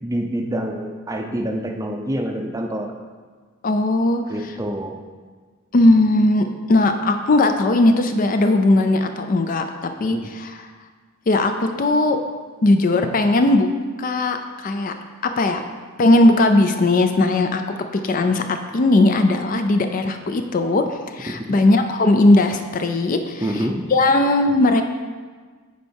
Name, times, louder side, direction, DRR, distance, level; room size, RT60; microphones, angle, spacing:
voice 1, 0.0-2.9 4.3-5.0 10.0-10.3 21.3-21.6 23.4-23.9, right 1 dB, 15° right, 3 dB, 0.5 m, -27 dB
voice 2, 3.6-4.6 5.7-9.6 10.0-10.7 11.3-12.2 12.6-13.7 14.0-14.9 15.2-15.6 16.0-17.6 17.9-24.8, left 2 dB, 40° left, 7 dB, 0.4 m, -18 dB
8.3 x 4.6 x 4.5 m, 1.5 s
head